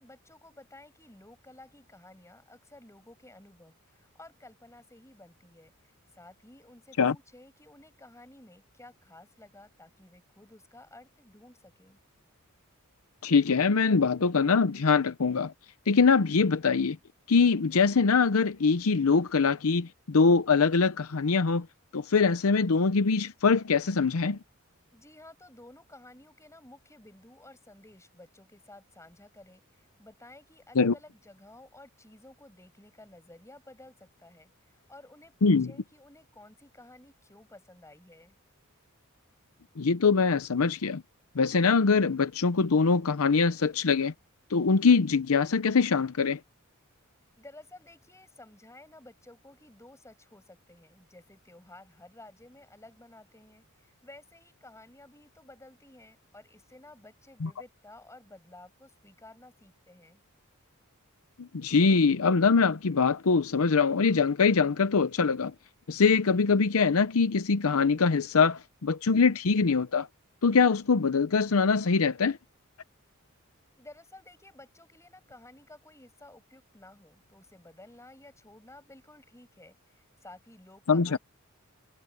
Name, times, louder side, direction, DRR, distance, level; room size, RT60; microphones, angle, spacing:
voice 1, 0.0-12.0 24.9-38.4 47.4-60.2 73.8-81.2, left 2 dB, 15° left, 7.7 m, -53 dB
voice 2, 13.2-15.5 15.9-17.0 17.3-21.7 21.9-24.4 30.8-30.9 35.4-35.7 39.8-41.0 41.4-44.1 44.5-46.4 57.4-57.5 61.4-65.5 65.9-70.1 70.4-72.4 80.9-81.2, left 5 dB, 70° left, 0.7 m, -23 dB
head